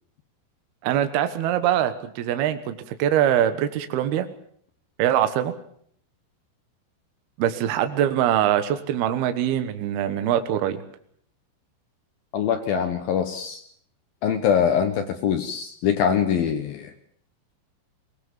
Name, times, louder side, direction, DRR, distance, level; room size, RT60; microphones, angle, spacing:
voice 1, 0.8-4.3 5.0-5.5 7.4-10.8, right 11 dB, 65° right, 9 dB, 2.8 m, -23 dB
voice 2, 12.3-13.6 14.2-16.9, left 8 dB, 70° left, 7 dB, 2.3 m, -23 dB
20.5 x 19.5 x 7.3 m, 0.62 s
omnidirectional pair, 5.7 m